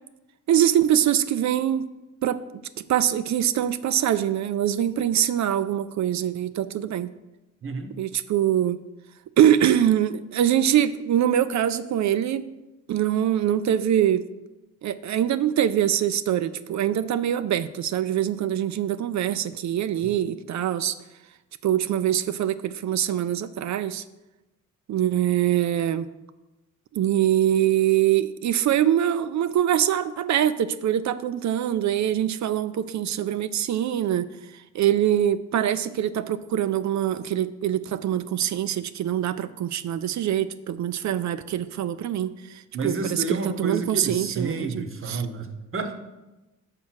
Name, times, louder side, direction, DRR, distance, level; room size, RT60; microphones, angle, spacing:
voice 1, 0.5-1.9 2.2-2.4 2.9-7.1 8.0-8.8 9.4-12.5 12.9-14.2 14.8-20.9 21.6-24.0 24.9-26.1 26.9-34.3 34.7-45.2, right 11 dB, 60° right, 13 dB, 0.4 m, -23 dB
voice 2, 7.6-7.9 42.7-45.9, right 3 dB, 40° right, 7 dB, 0.9 m, -30 dB
5.8 x 4.9 x 6.2 m, 1.0 s
cardioid pair, 105°, 33 cm